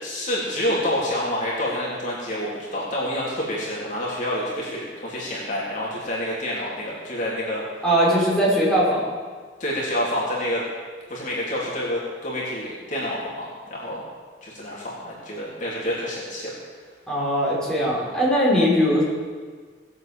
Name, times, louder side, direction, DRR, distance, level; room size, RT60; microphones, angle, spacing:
voice 1, 0.0-7.6 9.6-10.6 11.1-14.0 14.4-16.5, left 1 dB, 45° left, -6 dB, 3.4 m, -28 dB
voice 2, 7.8-9.1 17.1-19.0, equal, 5° left, -8 dB, 5.5 m, -20 dB
19.0 x 8.0 x 7.6 m, 1.5 s
head